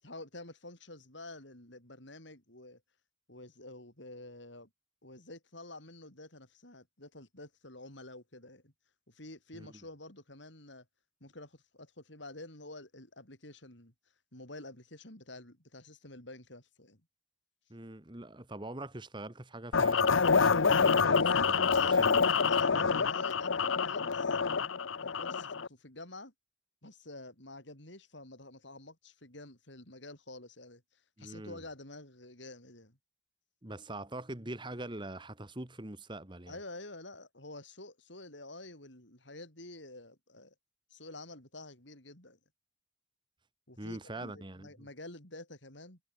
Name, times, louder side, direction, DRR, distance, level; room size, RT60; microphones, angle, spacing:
voice 1, 0.0-2.8 3.3-4.7 5.0-8.7 9.1-10.8 11.2-13.9 14.3-17.0 21.6-22.2 22.5-24.4 25.0-26.3 26.8-33.0 36.5-40.5 40.9-42.4 43.7-46.0, left 2 dB, 65° left, 6.3 m, -49 dB
voice 2, 17.7-23.1 31.2-31.6 33.6-36.6 43.8-44.9, right 1 dB, 25° right, 1.5 m, -43 dB
sound 1, 19.7-25.7, left 5 dB, 80° left, 0.8 m, -27 dB
head